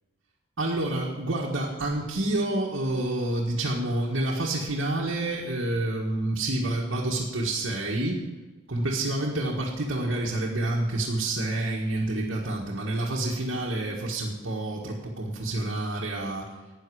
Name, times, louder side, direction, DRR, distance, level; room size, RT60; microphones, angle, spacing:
voice 1, 0.6-8.2 8.7-16.5, right 2 dB, 75° right, -4 dB, 1.6 m, -28 dB
13.0 x 9.3 x 4.8 m, 1.3 s
head